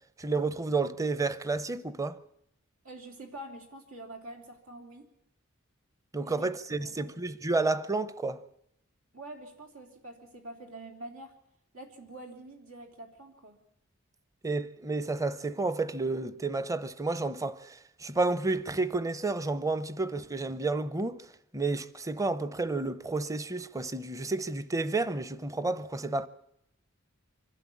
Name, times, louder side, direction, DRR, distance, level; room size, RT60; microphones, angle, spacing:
voice 1, 0.2-2.2 6.1-8.4 14.4-21.2 21.5-26.3, right 3 dB, 15° right, 0.7 m, -31 dB
voice 2, 2.8-5.1 6.2-7.1 9.1-11.3 11.7-13.6, right 1 dB, 90° right, 3.4 m, -46 dB
25.0 x 12.0 x 8.5 m
head